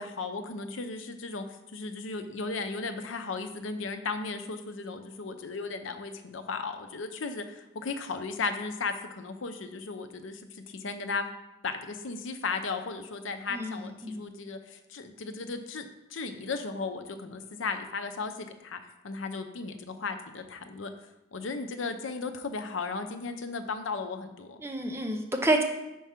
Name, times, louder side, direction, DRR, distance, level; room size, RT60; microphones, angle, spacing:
voice 1, 0.0-1.4 1.7-11.3 11.6-20.9 21.3-24.6, left 4 dB, 70° left, 8 dB, 0.6 m, -35 dB
voice 2, 13.5-14.3 24.6-25.6, right 1 dB, 15° right, 3 dB, 0.6 m, -29 dB
4.7 x 4.5 x 5.7 m, 0.96 s
head